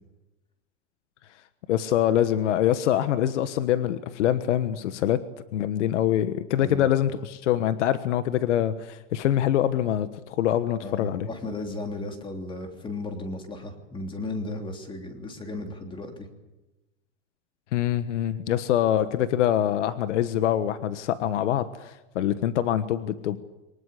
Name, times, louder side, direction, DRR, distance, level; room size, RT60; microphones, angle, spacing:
voice 1, 1.7-5.2 5.5-11.3 17.7-23.4, left 11 dB, 85° left, 12 dB, 1.4 m, -24 dB
voice 2, 10.8-16.3, left 2 dB, 15° left, 5 dB, 3.2 m, -35 dB
24.5 x 19.5 x 8.4 m, 1.0 s
supercardioid pair, 160°, 35 cm